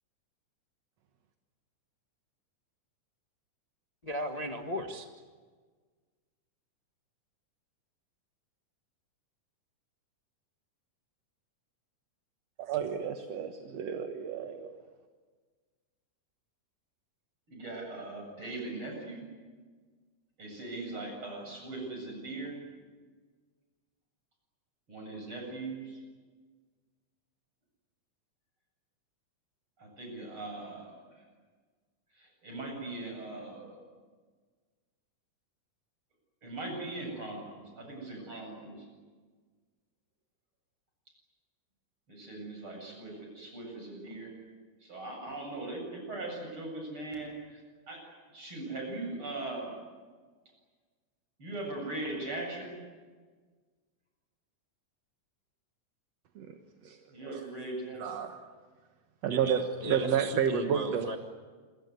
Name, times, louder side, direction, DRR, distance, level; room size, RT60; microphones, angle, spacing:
voice 1, 4.0-5.1 59.3-61.2, equal, 30° left, 3 dB, 0.7 m, -37 dB
voice 2, 12.6-14.7 56.4-56.5 56.8-57.4 58.0-58.4 59.2-61.1, right 7 dB, 60° right, 6 dB, 2.3 m, -31 dB
voice 3, 17.5-19.3 20.4-22.6 24.9-26.0 29.8-30.9 32.2-33.8 36.4-38.9 42.1-44.3 44.8-47.6 47.9-48.0 48.3-49.7 51.4-52.8 57.1-58.2 60.1-60.2, right 2 dB, 40° right, 1 dB, 8.8 m, -40 dB
28.0 x 24.0 x 8.2 m, 1.5 s
omnidirectional pair, 3.7 m